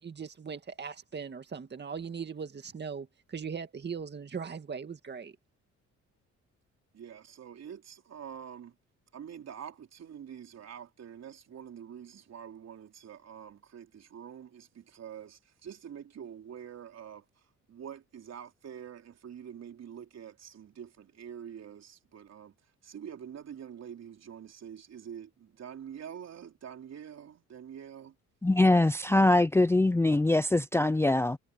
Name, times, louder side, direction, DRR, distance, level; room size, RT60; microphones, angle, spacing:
voice 1, 0.0-5.4, right 6 dB, 35° right, 2.1 m, -39 dB
voice 2, 6.9-8.8 9.1-17.2 17.7-22.5 22.8-28.1, right 8 dB, 60° right, 3.9 m, -46 dB
voice 3, 28.4-31.4, left 2 dB, 10° left, 0.5 m, -23 dB
cardioid pair, 90°, 30 cm